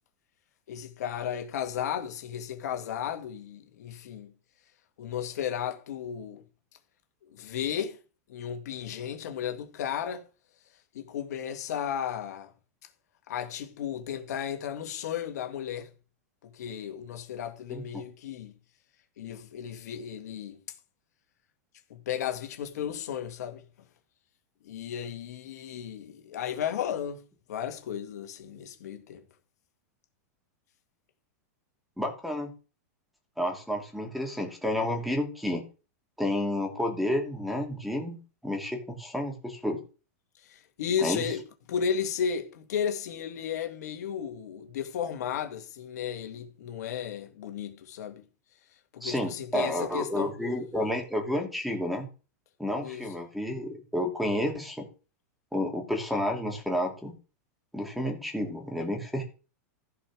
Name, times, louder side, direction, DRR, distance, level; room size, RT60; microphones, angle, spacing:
voice 1, 0.7-4.3 5.0-6.4 7.3-8.0 8.3-10.3 10.9-12.5 13.3-15.9 16.4-18.5 19.2-20.6 21.9-23.6 24.6-27.2 27.5-29.2 40.4-48.2 48.9-50.3 52.8-53.1, left 8 dB, 75° left, 2.0 m, -34 dB
voice 2, 17.7-18.0 32.0-32.5 33.4-35.6 36.2-39.8 41.0-41.2 49.0-52.1 52.6-54.9 55.5-57.2 57.7-59.2, left 1 dB, ahead, 2.8 m, -30 dB
15.0 x 5.2 x 6.2 m
hypercardioid pair, 135°, 9 cm